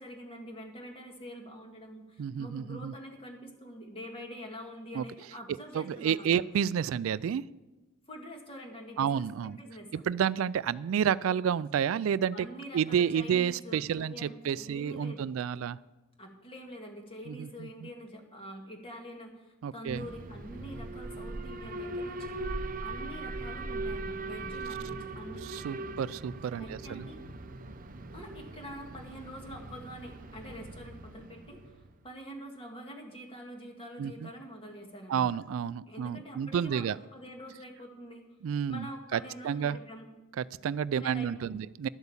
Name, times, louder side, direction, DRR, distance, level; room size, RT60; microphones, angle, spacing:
voice 1, 0.0-6.4 8.1-10.0 12.3-15.3 16.2-25.5 25.8-25.9 26.6-27.2 28.1-31.8 32.0-35.3 35.9-38.2 38.7-40.1 40.9-41.6, equal, 25° left, 2 dB, 1.9 m, -45 dB
voice 2, 2.2-2.9 4.9-5.0 5.7-7.4 9.0-9.6 9.9-12.5 12.7-15.8 17.3-17.9 19.6-20.0 25.4-27.0 34.0-34.3 35.1-37.0 38.4-39.2 39.4-39.8 40.4-41.9, right 8 dB, 70° right, 18 dB, 0.3 m, -30 dB
Alarm, 19.9-31.9, right 2 dB, 40° right, 0.7 m, -40 dB
12.0 x 8.1 x 7.1 m, 1.1 s
head